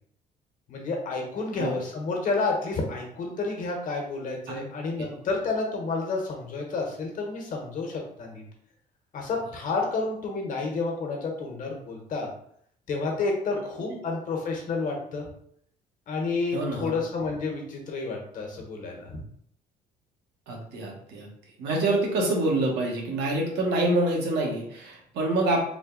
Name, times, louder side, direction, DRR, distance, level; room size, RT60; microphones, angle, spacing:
voice 1, 0.7-8.4 9.1-12.3 12.9-15.3 16.1-19.2, left 3 dB, 50° left, 0 dB, 1.2 m, -30 dB
voice 2, 16.5-17.0 20.5-21.3 21.6-25.6, right 2 dB, 80° right, -1 dB, 1.2 m, -26 dB
3.8 x 2.3 x 3.8 m, 0.67 s
cardioid pair, 110°, 17 cm